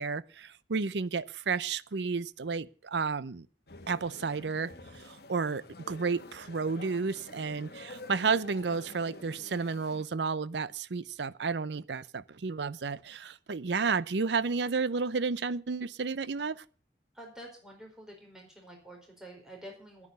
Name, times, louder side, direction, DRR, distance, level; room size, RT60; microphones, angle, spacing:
voice 1, 0.0-3.5 3.9-16.6, right 4 dB, 70° right, 0.6 m, -32 dB
sound 1, 3.7-10.0, left 2 dB, 60° left, 1.4 m, -49 dB
voice 2, 17.1-20.1, right 1 dB, 5° right, 4.6 m, -48 dB
9.8 x 9.6 x 8.1 m
head